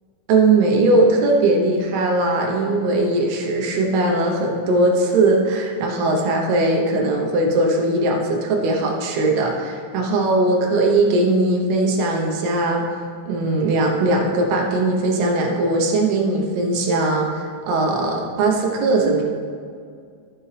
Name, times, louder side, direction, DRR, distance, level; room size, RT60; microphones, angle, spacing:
voice 1, 0.3-12.9 13.3-19.2, right 2 dB, 75° right, 0 dB, 2.6 m, -19 dB
13.0 x 7.4 x 3.3 m, 2.2 s
omnidirectional pair, 5.5 m